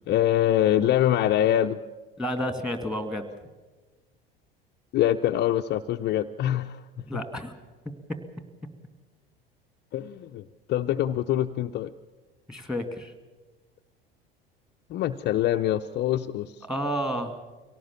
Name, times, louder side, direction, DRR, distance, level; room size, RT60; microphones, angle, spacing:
voice 1, 0.0-1.8 4.9-6.8 9.9-10.4 10.7-11.9 14.9-16.6, left 12 dB, 35° left, 6 dB, 0.6 m, -24 dB
voice 2, 2.2-3.3 7.0-7.6 7.8-8.2 12.5-13.1 16.7-17.5, equal, ahead, 9 dB, 2.5 m, -31 dB
24.0 x 18.0 x 7.3 m, 1.3 s
figure-of-eight pair, 70°, 29 cm